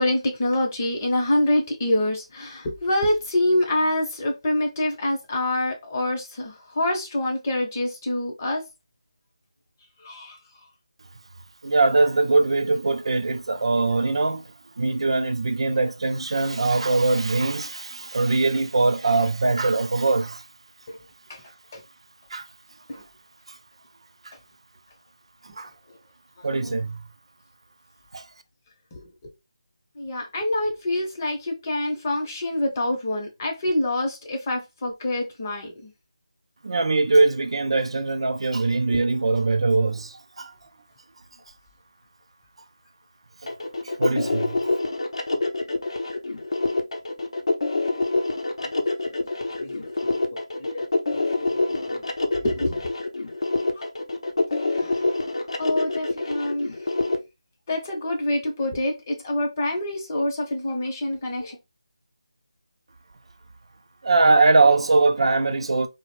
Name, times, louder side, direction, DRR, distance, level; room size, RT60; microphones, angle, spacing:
voice 1, 0.0-8.6 10.0-10.4 21.3-21.4 21.7-21.8 22.9-23.0 26.6-26.8 28.9-29.0 30.0-35.9 38.9-39.0 48.6-49.2 49.6-52.0 52.3-52.9 53.8-53.9 54.5-55.0 55.6-56.7 57.7-61.6, left 1 dB, 30° left, 0.6 m, -26 dB
voice 2, 11.6-14.4 14.8-20.4 22.3-22.5 22.9-23.0 23.5-23.6 24.2-24.3 25.4-25.7 26.4-27.0 28.1-28.3 36.6-40.5 44.0-44.6 64.0-65.9, right 3 dB, 65° right, 0.3 m, -21 dB
sound 1, 43.5-57.2, left 2 dB, 70° left, 0.5 m, -26 dB
2.4 x 2.0 x 3.0 m
figure-of-eight pair, 165°, 3 cm